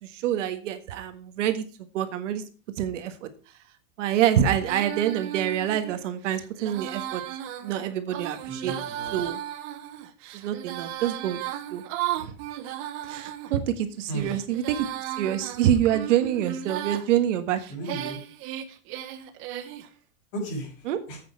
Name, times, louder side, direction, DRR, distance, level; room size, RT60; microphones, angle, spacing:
voice 1, 0.0-1.6 1.9-2.4 2.8-3.3 4.0-7.2 7.6-8.7 9.1-9.4 10.3-11.4 11.7-11.8 12.2-12.3 13.1-14.9 15.2-17.6 20.9-21.0, right 10 dB, 65° right, 9 dB, 1.6 m, -26 dB
Female singing, 4.6-13.5 14.1-17.1 17.6-19.9, right 12 dB, 30° right, 1.1 m, -35 dB
voice 2, 8.5-9.2 14.1-14.4 17.7-18.2 20.3-21.2, right 1 dB, 45° left, 0 dB, 5.9 m, -35 dB
10.5 x 8.4 x 4.7 m, 0.36 s
supercardioid pair, 160°, 40 cm